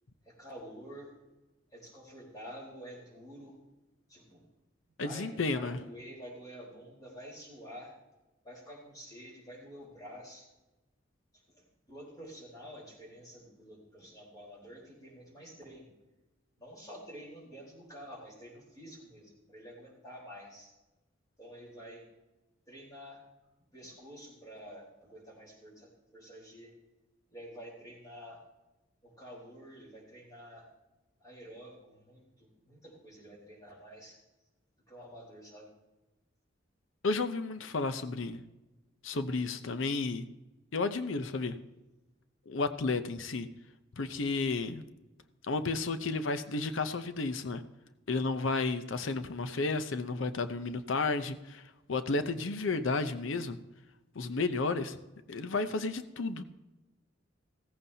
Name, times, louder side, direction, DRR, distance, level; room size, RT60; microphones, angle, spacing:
voice 1, 0.2-1.1 1.7-3.6 4.1-4.5 5.0-7.9 8.4-10.5 11.3-15.9 16.6-20.7 21.4-22.1 22.7-23.2 23.7-26.8 27.3-28.4 29.0-30.7 31.2-34.2 34.9-35.7, equal, 20° left, -4 dB, 3.9 m, -49 dB
voice 2, 5.0-5.8 37.0-38.4 39.0-40.3 40.7-41.6 42.5-43.5 44.0-44.8 45.4-47.6 48.1-53.6 54.1-55.0 55.3-56.4, left 3 dB, 80° left, 11 dB, 0.7 m, -32 dB
16.0 x 14.5 x 2.8 m, 1.0 s
head